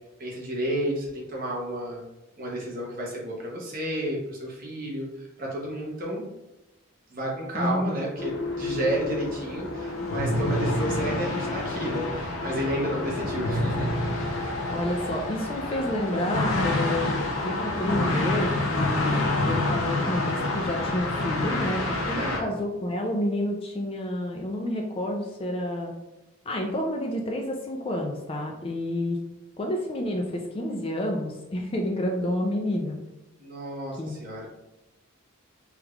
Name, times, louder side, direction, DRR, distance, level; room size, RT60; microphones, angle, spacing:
voice 1, 0.2-2.0 2.4-6.2 7.1-13.9 22.1-22.5 33.4-34.5, right 1 dB, 40° right, -3 dB, 0.9 m, -31 dB
voice 2, 7.5-8.0 14.7-19.2 19.5-25.9 26.5-29.2 29.6-33.0 34.0-34.2, left 1 dB, 25° left, 2 dB, 0.3 m, -29 dB
sound 1, 8.2-22.4, left 2 dB, 75° left, 0.6 m, -28 dB
3.4 x 3.1 x 2.3 m, 0.93 s
head